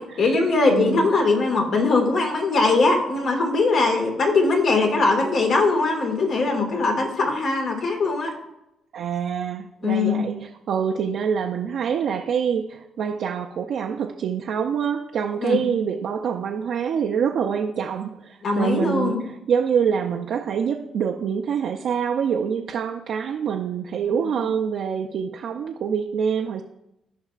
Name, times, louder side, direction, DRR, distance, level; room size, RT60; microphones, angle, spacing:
voice 1, 0.2-8.3 9.8-10.2 15.4-15.6 18.4-19.2, left 3 dB, 60° left, 2 dB, 1.8 m, -21 dB
voice 2, 0.7-1.1 8.9-26.6, right 7 dB, 70° right, 1 dB, 0.5 m, -25 dB
14.5 x 5.5 x 2.4 m, 0.87 s
cardioid pair, 90°, 0 cm